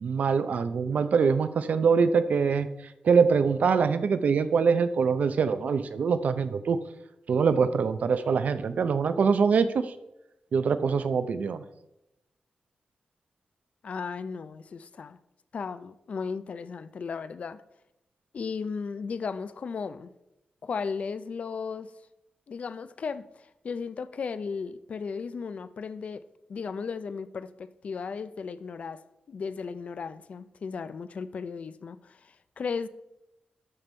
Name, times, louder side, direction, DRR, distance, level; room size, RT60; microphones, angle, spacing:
voice 1, 0.0-2.7 3.0-6.8 7.3-9.9 10.5-11.6, right 5 dB, 65° right, 0.5 m, -24 dB
voice 2, 13.8-15.2 15.5-17.6 18.3-20.1 20.6-21.9 22.5-26.2 26.5-29.0 29.3-32.9, left 5 dB, 55° left, 0.4 m, -35 dB
12.5 x 5.3 x 4.3 m
wide cardioid pair, 180°, 3 cm